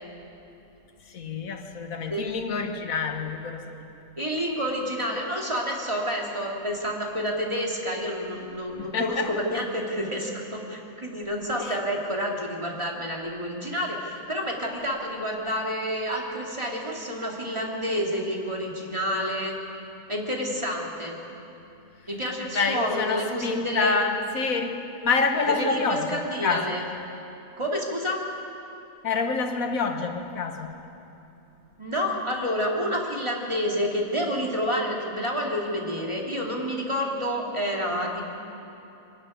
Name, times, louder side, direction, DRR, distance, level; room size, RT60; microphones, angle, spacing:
voice 1, 1.1-3.8 8.9-9.3 11.6-11.8 22.5-26.8 29.0-30.7, left 4 dB, 90° left, 5 dB, 1.8 m, -27 dB
voice 2, 4.2-19.6 20.1-21.1 22.1-24.0 25.4-26.9 27.6-28.2 31.8-38.2, equal, 20° right, -2 dB, 2.6 m, -29 dB
24.0 x 12.5 x 9.3 m, 2.9 s
omnidirectional pair, 1.4 m